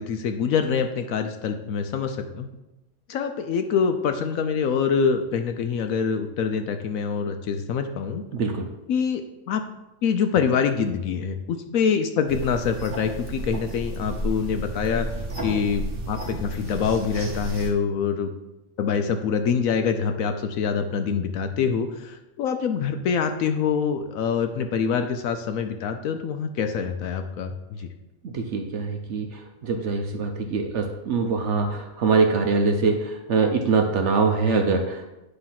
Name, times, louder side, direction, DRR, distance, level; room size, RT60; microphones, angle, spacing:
voice 1, 0.0-2.5 3.1-8.2 8.9-9.6 10.0-15.1 15.4-18.3 18.8-27.9, left 6 dB, 70° left, 7 dB, 0.9 m, -25 dB
voice 2, 8.3-8.6 28.3-29.3 29.6-35.1, right 4 dB, 60° right, 4 dB, 0.8 m, -23 dB
sound 1, 12.3-17.7, right 1 dB, 40° right, 1.3 m, -32 dB
9.6 x 3.2 x 5.7 m, 0.99 s
omnidirectional pair, 1.7 m